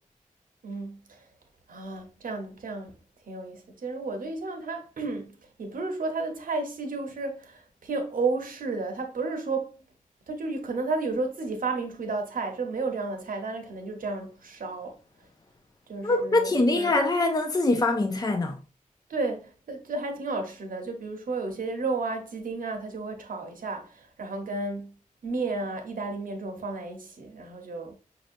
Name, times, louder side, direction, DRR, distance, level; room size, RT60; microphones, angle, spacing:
voice 1, 0.6-1.2 1.7-2.9 3.3-9.8 10.3-15.0 15.9-16.9 19.1-24.9 25.2-28.0, right 3 dB, 80° right, 0.9 m, -32 dB
voice 2, 16.0-18.6, left 2 dB, 25° left, 0.4 m, -23 dB
5.2 x 2.8 x 2.6 m
wide cardioid pair, 80°, 14 cm